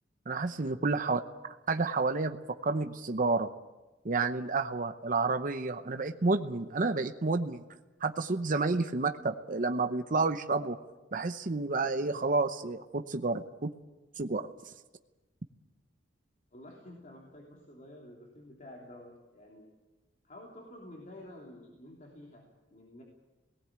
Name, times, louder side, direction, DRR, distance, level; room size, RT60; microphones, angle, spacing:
voice 1, 0.3-1.2 1.7-3.5 4.0-7.6 8.0-10.8 11.1-13.7 14.2-14.5, right 3 dB, 50° right, 7 dB, 0.8 m, -30 dB
voice 2, 16.5-19.7 20.2-23.0, left 1 dB, 45° left, -2 dB, 3.2 m, -50 dB
18.5 x 17.0 x 8.9 m, 1.1 s
head